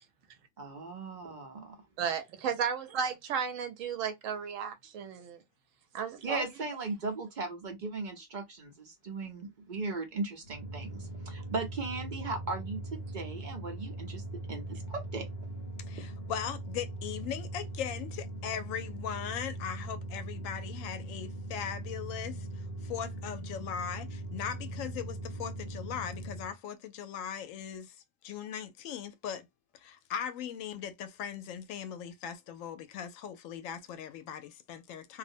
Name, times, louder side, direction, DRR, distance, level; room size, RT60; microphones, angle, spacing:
voice 1, 0.6-1.8 6.2-12.8 13.1-14.2 14.5-15.2, right 3 dB, 45° right, 0.7 m, -37 dB
voice 2, 2.0-5.4 5.9-6.5, right 7 dB, 80° right, 1.0 m, -34 dB
sound 1, 10.4-26.5, right 1 dB, 55° left, 0.8 m, -40 dB
voice 3, 15.9-28.0 28.2-29.5 29.7-35.2, left 8 dB, 85° left, 1.0 m, -39 dB
2.5 x 2.0 x 2.5 m
omnidirectional pair, 1.3 m